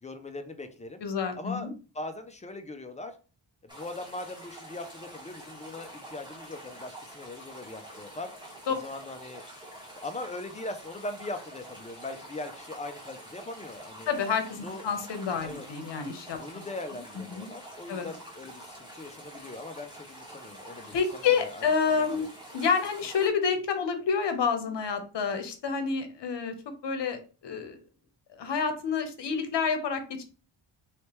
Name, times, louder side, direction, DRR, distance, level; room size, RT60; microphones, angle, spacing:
voice 1, 0.0-1.0 1.4-1.7 1.9-3.2 3.6-8.3 8.7-9.4 10.0-14.1 14.6-14.8 15.4-15.7 16.4-21.0 21.2-21.7 21.9-22.3, left 2 dB, 15° left, 7 dB, 0.4 m, -40 dB
voice 2, 1.0-1.7 8.7-8.8 14.1-16.4 17.3-17.5 17.9-18.1 20.9-22.3 22.5-26.5 26.8-27.8 28.4-30.2, left 6 dB, 60° left, 7 dB, 0.9 m, -28 dB
sound 1, 3.7-23.3, right 1 dB, 10° right, 1.3 m, -47 dB
3.2 x 3.2 x 3.0 m, 0.35 s
wide cardioid pair, 120°, 47 cm